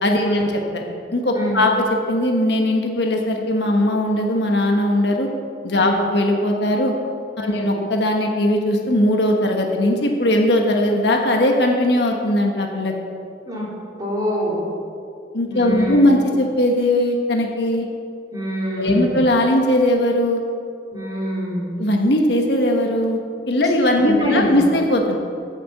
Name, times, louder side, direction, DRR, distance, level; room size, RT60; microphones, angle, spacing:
voice 1, 0.0-0.8 1.1-5.3 5.6-6.9 7.4-12.9 15.3-17.9 18.8-20.4 21.8-25.1, left 1 dB, 70° left, 2 dB, 1.3 m, -19 dB
voice 2, 14.0-14.7 15.5-16.0 18.3-19.2 20.9-21.8 24.0-24.6, equal, 20° right, -5 dB, 2.9 m, -25 dB
9.5 x 6.9 x 7.3 m, 2.4 s
head